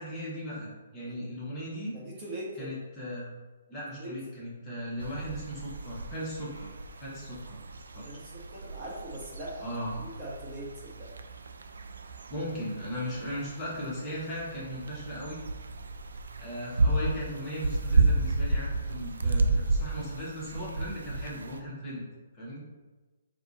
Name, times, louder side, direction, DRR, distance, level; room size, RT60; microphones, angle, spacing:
voice 1, 0.0-1.9 2.6-3.3 3.7-6.7 7.0-7.6 7.9-8.1 9.6-10.0 12.3-15.4 16.4-22.0 22.3-22.6, equal, 15° left, -7 dB, 1.1 m, -37 dB
voice 2, 1.9-2.7 4.0-4.1 8.0-11.2, right 1 dB, 30° right, -5 dB, 1.1 m, -41 dB
sound 1, 5.0-21.6, right 3 dB, 85° right, 0.4 m, -32 dB
4.7 x 2.4 x 4.1 m, 1.2 s
hypercardioid pair, 155°, 0 cm